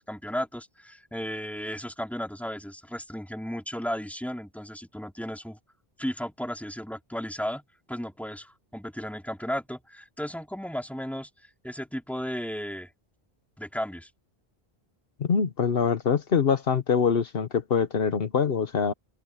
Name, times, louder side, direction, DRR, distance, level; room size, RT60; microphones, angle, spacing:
voice 1, 0.0-5.6 6.0-7.6 7.9-11.3 11.6-12.9 13.6-14.1, equal, ahead, 2.8 m, -34 dB
voice 2, 15.2-18.9, left 6 dB, 65° left, 1.1 m, -24 dB
omnidirectional pair, 1.1 m